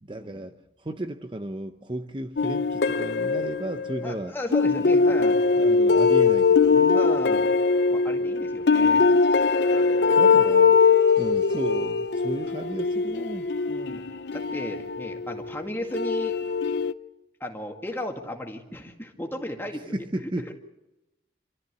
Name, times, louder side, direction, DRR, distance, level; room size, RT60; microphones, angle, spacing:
voice 1, 0.0-4.4 5.5-7.0 10.2-10.8 11.2-13.5 19.9-20.5, right 1 dB, 30° right, 8 dB, 0.7 m, -34 dB
sound 1, 2.4-4.1 4.5-15.4 15.9-16.9, left 4 dB, 80° left, 0.7 m, -21 dB
voice 2, 4.0-5.4 6.9-7.5 7.9-9.1 9.7-10.3 13.7-16.4 17.4-19.9 20.2-20.5, left 1 dB, 15° left, 2 dB, 2.0 m, -35 dB
27.5 x 13.5 x 8.2 m, 0.96 s
head